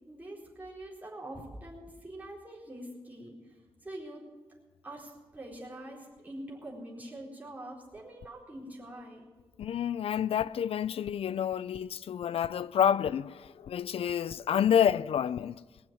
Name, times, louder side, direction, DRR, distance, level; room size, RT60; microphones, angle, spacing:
voice 1, 0.1-4.2 4.8-9.3, right 1 dB, 15° right, 4.3 m, -44 dB
voice 2, 9.6-15.6, left 9 dB, 80° left, 0.4 m, -28 dB
20.0 x 7.3 x 7.7 m
wide cardioid pair, 100°, 10 cm